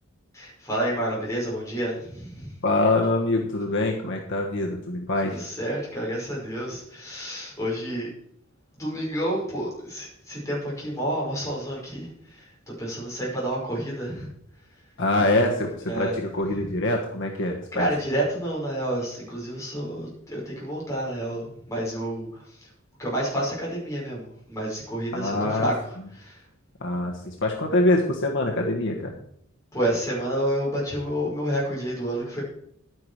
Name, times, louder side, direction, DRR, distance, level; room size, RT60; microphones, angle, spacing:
voice 1, 0.3-2.5 5.2-8.1 8.8-12.5 12.8-14.3 15.9-16.1 17.7-22.6 23.0-25.7 26.1-26.4 29.7-32.4, right 1 dB, 15° left, -5 dB, 5.5 m, -29 dB
voice 2, 2.6-5.4 15.0-17.9 25.1-25.7 26.8-29.1, left 2 dB, 60° left, 1 dB, 1.4 m, -24 dB
11.5 x 9.6 x 4.8 m, 0.69 s
head